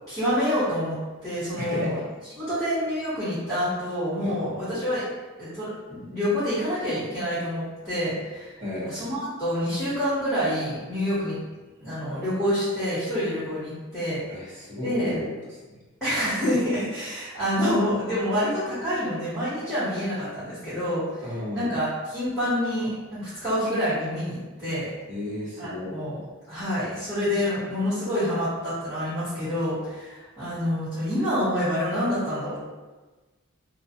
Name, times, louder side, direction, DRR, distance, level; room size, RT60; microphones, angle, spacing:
voice 1, 0.1-1.0 1.2-2.0 2.4-5.0 5.4-8.6 8.9-11.4 11.8-14.2 14.8-15.2 16.0-21.2 21.5-24.9 25.6-26.2 26.5-32.6, equal, ahead, -16 dB, 1.2 m, -27 dB
voice 2, 1.6-1.9 4.2-4.4 8.6-9.0 14.3-15.6 21.2-21.7 25.1-25.9, left 1 dB, 35° right, -8 dB, 0.9 m, -33 dB
2.3 x 2.3 x 2.7 m, 1.2 s
head